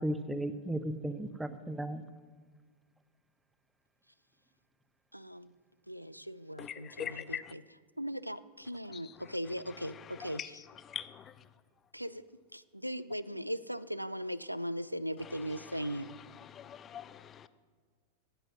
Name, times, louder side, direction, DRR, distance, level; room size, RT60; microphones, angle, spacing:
voice 1, 0.0-2.0, right 1 dB, 5° right, 11 dB, 0.8 m, -35 dB
voice 2, 5.1-5.5 5.9-7.6 8.0-10.6 11.9-12.2 12.5-16.1, equal, 90° right, 17 dB, 0.4 m, -39 dB
voice 3, 6.6-7.5 8.9-9.2 9.9-11.3 15.2-17.5, left 9 dB, 25° left, 15 dB, 0.5 m, -44 dB
13.0 x 9.0 x 5.9 m, 1.5 s
figure-of-eight pair, 90°, 0 cm